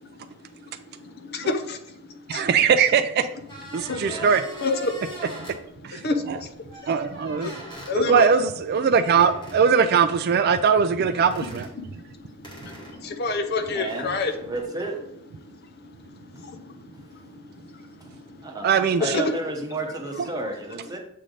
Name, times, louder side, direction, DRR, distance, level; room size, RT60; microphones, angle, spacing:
voice 1, 0.0-2.5 3.7-4.2 4.6-5.0 5.9-8.3 11.8-14.3 15.4-18.6 19.1-19.2 20.2-20.3, left 3 dB, 50° left, 8 dB, 0.6 m, -31 dB
voice 2, 2.3-3.3 3.7-4.4 5.8-6.0 6.3-6.4 6.9-7.5 7.9-11.7 18.6-19.2 20.2-20.3, right 6 dB, 50° right, 10 dB, 0.3 m, -20 dB
sound 1, 3.5-5.6 6.7-7.9 9.2-9.6 11.1-11.7 12.4-14.6, right 1 dB, 20° left, 1.5 m, -42 dB
voice 3, 3.9-4.3 13.7-14.2 14.5-15.0 18.4-18.7 19.0-21.0, right 2 dB, 15° right, 1 dB, 0.9 m, -32 dB
7.5 x 3.3 x 3.9 m, 0.79 s
head